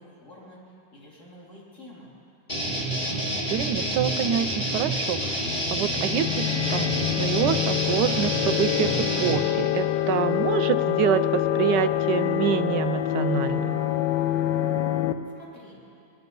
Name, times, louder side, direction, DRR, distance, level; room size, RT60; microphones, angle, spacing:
voice 1, 0.0-2.1 15.3-15.8, equal, 45° left, -6 dB, 3.7 m, -48 dB
sound 1, 2.5-9.4, right 1 dB, 20° left, 2.4 m, -28 dB
voice 2, 3.0-5.4 5.7-13.8, right 11 dB, 85° right, 13 dB, 1.2 m, -27 dB
sound 2, 5.6-15.1, left 12 dB, 90° left, 1.4 m, -26 dB
22.0 x 11.5 x 5.3 m, 2.4 s
omnidirectional pair, 1.8 m